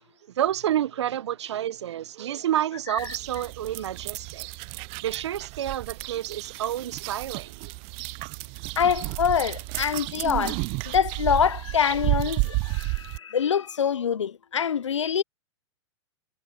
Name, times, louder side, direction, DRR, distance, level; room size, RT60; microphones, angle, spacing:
voice 1, 0.3-4.5 5.0-7.7, right 11 dB, 70° right, 1.1 m, -29 dB
sound 1, 3.0-13.2, right 31 dB, 40° right, 0.6 m, -32 dB
voice 2, 8.8-10.6 10.9-15.2, left 8 dB, 85° left, 0.6 m, -25 dB
hypercardioid pair, 110°, 15 cm